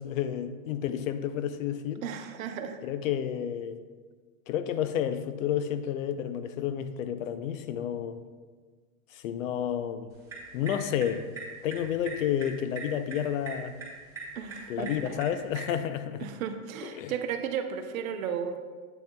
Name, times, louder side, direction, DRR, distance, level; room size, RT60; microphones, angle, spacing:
voice 1, 0.0-2.0 2.8-3.8 4.5-8.2 9.1-10.1 10.5-11.3 11.6-13.7 14.7-16.3 16.8-17.1, left 9 dB, 60° left, 11 dB, 0.6 m, -31 dB
voice 2, 2.0-2.8 14.3-14.9 16.2-18.6, right 8 dB, 65° right, 7 dB, 0.7 m, -34 dB
sound 1, 10.1-15.8, right 4 dB, 5° right, 1.1 m, -43 dB
8.4 x 6.7 x 2.2 m, 1.4 s
supercardioid pair, 160°, 45 cm